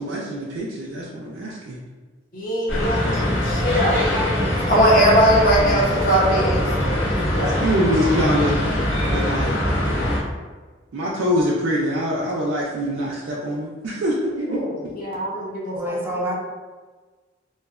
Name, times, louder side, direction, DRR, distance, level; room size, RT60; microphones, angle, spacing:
voice 1, 0.0-1.8 7.4-8.6 9.1-9.6 10.9-14.6, equal, 80° right, -5 dB, 0.4 m, -24 dB
voice 2, 2.3-4.0 4.7-7.6 14.5-16.0 16.2-16.3, equal, 50° left, -4 dB, 0.8 m, -21 dB
sound 1, 2.7-10.2, left 1 dB, 80° left, 1.0 m, -22 dB
voice 3, 4.0-4.9 15.7-16.3, equal, 10° right, -2 dB, 0.4 m, -29 dB
3.0 x 2.1 x 2.3 m, 1.3 s
head